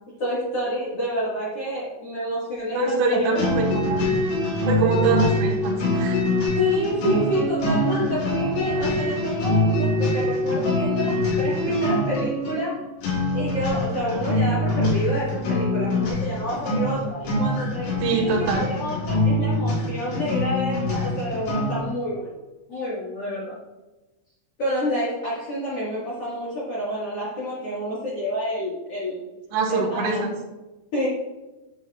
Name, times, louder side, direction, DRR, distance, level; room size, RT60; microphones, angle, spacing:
voice 1, 0.2-3.4 6.5-12.8 13.3-22.3 22.7-23.6 24.6-29.3 29.7-30.2 30.9-31.1, equal, 70° left, -9 dB, 1.4 m, -28 dB
voice 2, 2.7-4.1 4.6-6.2 18.0-18.7 29.5-30.3, right 4 dB, 70° right, -3 dB, 3.2 m, -24 dB
sound 1, 3.3-21.9, left 1 dB, 90° left, 5.6 m, -24 dB
10.5 x 7.0 x 2.4 m, 1.1 s
omnidirectional pair, 5.6 m